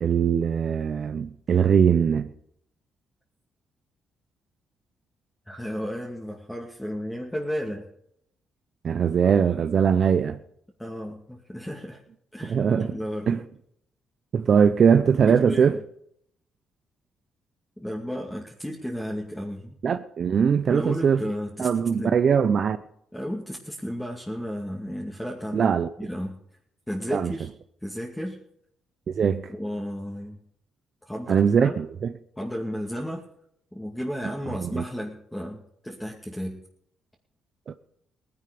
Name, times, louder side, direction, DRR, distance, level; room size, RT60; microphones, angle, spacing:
voice 1, 0.0-2.3 8.8-10.4 12.4-12.9 13.3-13.4 14.3-15.8 19.8-21.2 21.6-22.8 25.5-25.9 27.1-27.3 29.1-29.5 31.3-32.1 34.6-34.8 37.7-37.8, right 7 dB, 55° right, 0.7 m, -21 dB
voice 2, 5.5-7.9 10.8-12.0 12.3-13.4 15.2-15.8 17.8-19.8 20.7-21.7 22.0-22.2 23.1-25.7 26.0-26.4 26.9-27.5 27.8-28.4 29.5-30.4 31.0-31.8 32.4-33.2 33.7-36.6, equal, 5° left, 2.2 m, -33 dB
18.5 x 11.0 x 5.1 m
cardioid pair, 90°, 0 cm